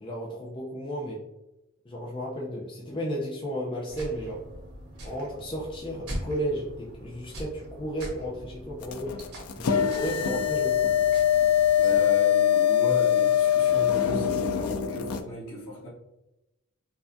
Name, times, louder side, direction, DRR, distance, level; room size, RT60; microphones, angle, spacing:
voice 1, 0.0-1.2 1.8-4.4 5.0-9.1 9.6-10.9 11.8-12.0, equal, 20° left, -3 dB, 0.5 m, -33 dB
sound 1, 3.9-12.0, equal, 80° right, 1.4 m, -42 dB
sound 2, 8.8-15.2, left 10 dB, 90° left, 0.4 m, -23 dB
voice 2, 11.8-15.9, equal, 70° left, -4 dB, 1.3 m, -36 dB
4.7 x 2.4 x 2.5 m, 0.92 s
head